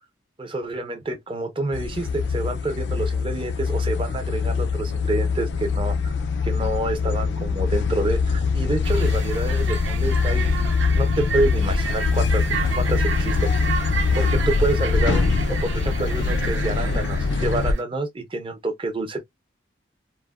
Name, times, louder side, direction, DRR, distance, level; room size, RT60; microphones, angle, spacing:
voice 1, 0.4-6.1 6.4-10.7 11.0-13.5 14.1-19.2, right 2 dB, 25° right, 0.6 m, -28 dB
sound 1, 1.7-17.7, left 4 dB, 70° left, 0.3 m, -23 dB
sound 2, 8.8-17.8, right 6 dB, 85° right, 0.5 m, -32 dB
3.1 x 2.1 x 2.3 m
head